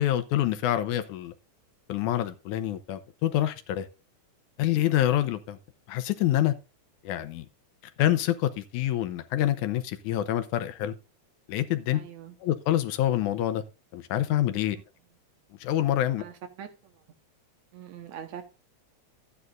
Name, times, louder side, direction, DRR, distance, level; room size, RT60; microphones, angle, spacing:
voice 1, 0.0-1.3 1.9-3.9 4.6-5.6 5.9-6.5 7.0-7.5 8.0-10.9 11.5-12.0 12.4-13.6 13.9-14.8 15.6-16.2, left 12 dB, 85° left, 2.3 m, -26 dB
voice 2, 11.9-12.3 16.2-16.7 17.7-18.4, right 9 dB, 70° right, 2.4 m, -42 dB
12.5 x 9.6 x 2.6 m
omnidirectional pair, 3.4 m